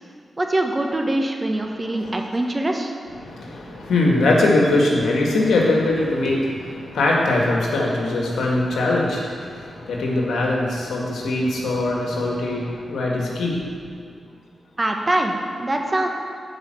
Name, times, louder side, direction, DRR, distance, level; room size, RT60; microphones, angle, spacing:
voice 1, 0.4-2.9 14.8-16.1, right 1 dB, 30° right, 3 dB, 1.3 m, -23 dB
voice 2, 3.1-13.8, left 2 dB, 90° left, -2 dB, 1.7 m, -21 dB
9.9 x 5.0 x 7.6 m, 2.2 s
cardioid pair, 50°, 0 cm